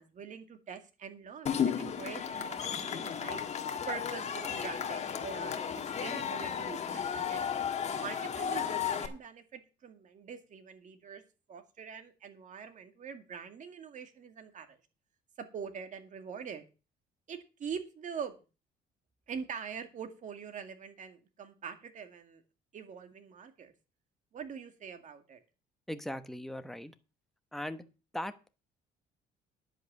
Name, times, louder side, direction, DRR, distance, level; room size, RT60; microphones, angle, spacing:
voice 1, 0.0-3.4 3.9-5.5 6.0-7.5 8.0-11.2 11.5-14.8 15.4-16.7 17.3-18.4 19.3-22.4 22.7-23.7 24.3-25.4, right 7 dB, 50° right, 7 dB, 2.1 m, -44 dB
Cheering / Crowd, 1.5-9.1, left 8 dB, 40° left, 1.7 m, -34 dB
voice 2, 25.9-26.9 27.5-27.8 28.1-28.5, left 1 dB, ahead, 9 dB, 1.0 m, -39 dB
10.5 x 8.1 x 6.0 m, 0.32 s
cardioid pair, 110°, 17 cm